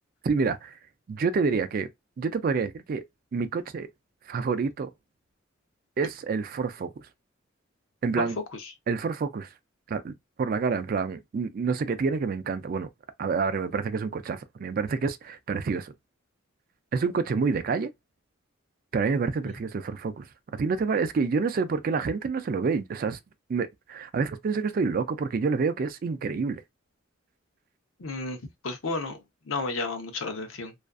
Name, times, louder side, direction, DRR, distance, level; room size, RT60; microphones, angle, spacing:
voice 1, 0.2-0.8 1.1-1.9 2.2-3.0 3.3-3.9 4.3-4.9 6.0-6.9 8.0-8.4 8.9-9.5 9.9-10.1 10.4-12.9 13.2-15.9 16.9-17.9 18.9-20.3 20.5-23.2 23.5-26.6, right 4 dB, 45° right, 0.3 m, -28 dB
voice 2, 8.2-8.7 19.4-19.5 28.0-28.4 28.6-29.2 29.5-30.7, left 3 dB, 90° left, 0.7 m, -32 dB
2.4 x 2.4 x 2.2 m
head